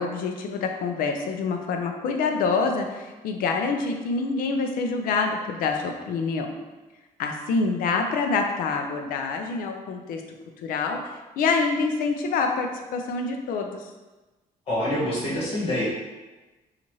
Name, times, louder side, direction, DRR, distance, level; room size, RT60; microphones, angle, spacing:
voice 1, 0.0-6.5 7.2-10.2 10.6-11.0 11.4-13.8, left 4 dB, 75° left, 4 dB, 0.5 m, -26 dB
voice 2, 14.7-15.8, left 1 dB, 40° left, -7 dB, 1.4 m, -26 dB
4.1 x 2.5 x 3.0 m, 1.2 s
cardioid pair, 155°, 15 cm